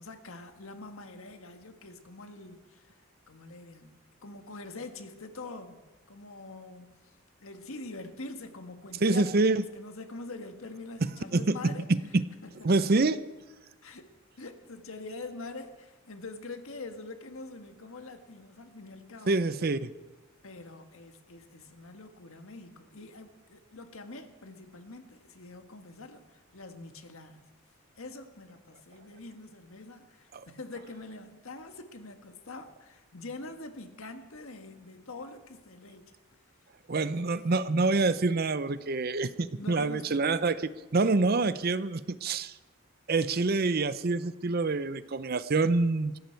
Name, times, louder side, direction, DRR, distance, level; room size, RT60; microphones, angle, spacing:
voice 1, 0.0-11.9 12.4-12.9 13.8-14.1 14.4-19.4 20.4-27.5 28.0-36.2 37.0-37.5 39.6-40.4, left 3 dB, 70° left, 7 dB, 1.6 m, -45 dB
voice 2, 9.0-9.7 11.0-12.2 12.6-13.2 19.3-19.9 30.3-30.4 36.9-40.6 40.9-42.5 43.1-46.2, right 3 dB, 45° right, 15 dB, 0.6 m, -26 dB
20.5 x 15.5 x 4.6 m, 1.2 s
head